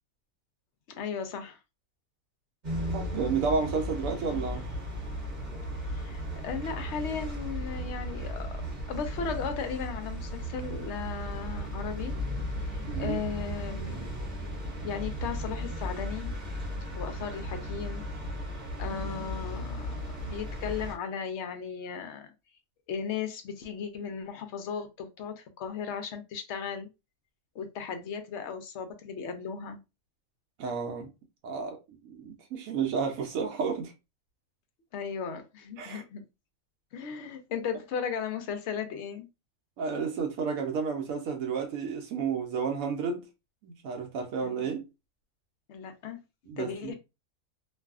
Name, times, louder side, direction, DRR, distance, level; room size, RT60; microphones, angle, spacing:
voice 1, 1.0-1.6 5.8-12.2 12.7-14.1 14.8-16.4 17.0-18.0 18.8-22.3 22.9-26.9 27.5-29.8 34.9-36.2 36.9-39.3 44.4-44.7 45.7-46.2 46.6-46.9, left 6 dB, 65° left, 0.8 m, -36 dB
sound 1, 2.6-20.9, equal, 35° right, 1.1 m, -35 dB
voice 2, 2.9-4.7 12.8-13.2 30.6-31.1 31.4-33.9 35.8-36.0 39.8-43.3 43.6-44.8 46.5-46.9, right 5 dB, 90° right, 1.0 m, -31 dB
2.6 x 2.4 x 2.3 m
omnidirectional pair, 1.4 m